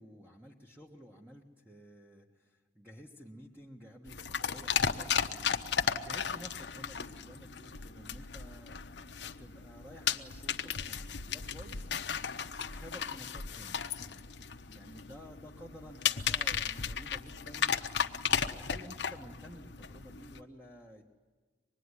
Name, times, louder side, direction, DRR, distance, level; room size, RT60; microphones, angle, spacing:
voice 1, 0.0-8.8 9.4-12.2 12.6-18.0 18.4-21.0, equal, 10° right, -2 dB, 1.6 m, -52 dB
sound 1, 4.1-20.4, left 7 dB, 75° left, 0.9 m, -35 dB
25.0 x 21.0 x 9.9 m, 1.4 s
head